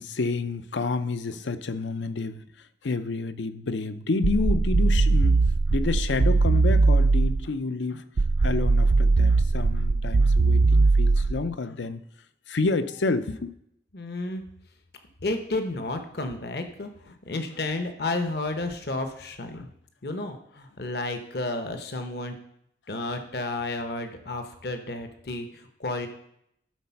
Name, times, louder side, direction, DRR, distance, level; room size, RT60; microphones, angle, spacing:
voice 1, 0.0-5.4 5.7-8.0 8.4-12.0 12.5-13.5 19.5-19.7, left 3 dB, 85° left, 12 dB, 0.6 m, -29 dB
sound 1, 4.2-7.5 8.2-11.5, right 3 dB, 50° right, 0.3 m, -20 dB
voice 2, 13.9-14.4 15.2-19.7 20.0-22.4 22.9-26.1, left 2 dB, 60° left, 6 dB, 0.9 m, -32 dB
12.5 x 4.2 x 5.8 m, 0.74 s
head